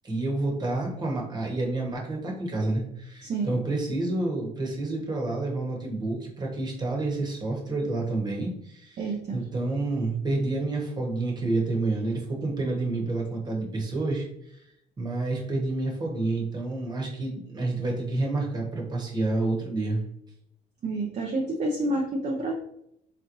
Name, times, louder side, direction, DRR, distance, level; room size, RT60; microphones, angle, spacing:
voice 1, 0.0-9.0 9.3-14.3 15.0-20.0, right 2 dB, 25° right, -1 dB, 1.1 m, -29 dB
voice 2, 3.2-3.6 9.0-9.4 20.8-22.5, right 2 dB, 40° right, 0 dB, 0.5 m, -29 dB
4.0 x 3.0 x 2.6 m, 0.75 s
cardioid pair, 110°, 17 cm